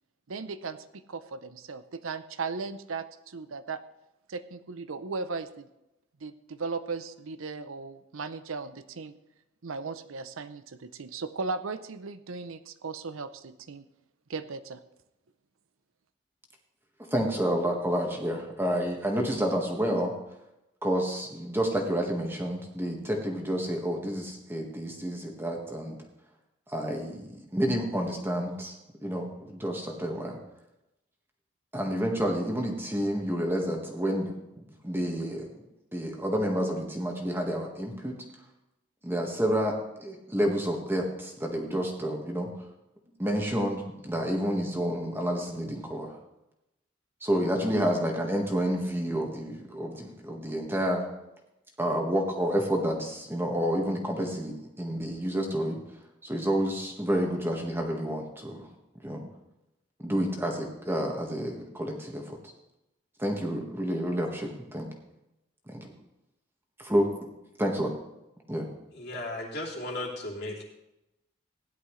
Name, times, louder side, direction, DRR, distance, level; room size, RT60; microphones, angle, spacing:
voice 1, 0.3-3.8 4.3-5.6 6.2-9.1 9.6-13.9 14.3-14.8, right 4 dB, 85° right, 11 dB, 0.7 m, -37 dB
voice 2, 17.1-20.1 20.8-26.0 26.7-28.7 29.0-30.4 31.7-35.6 35.9-38.2 39.0-42.5 43.2-46.2 47.2-51.1 51.8-55.8 56.2-58.7 59.0-59.2 60.0-62.4 63.2-64.9 65.7-65.9 66.8-67.1 67.6-68.0 68.5-68.7, equal, 10° right, 1 dB, 1.6 m, -29 dB
voice 3, 68.9-70.6, left 1 dB, 55° left, -3 dB, 3.0 m, -35 dB
16.5 x 11.0 x 3.2 m, 0.91 s
head